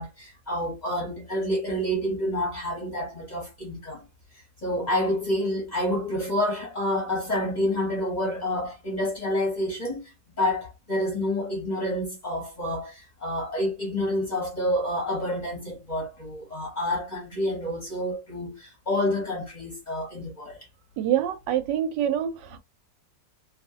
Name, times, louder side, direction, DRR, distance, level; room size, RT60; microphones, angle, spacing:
voice 1, 0.0-4.0 4.6-20.6, left 1 dB, 35° left, 0.7 m, -28 dB
voice 2, 21.0-22.6, right 10 dB, 85° right, 1.2 m, -26 dB
2.8 x 2.4 x 2.7 m
omnidirectional pair, 1.9 m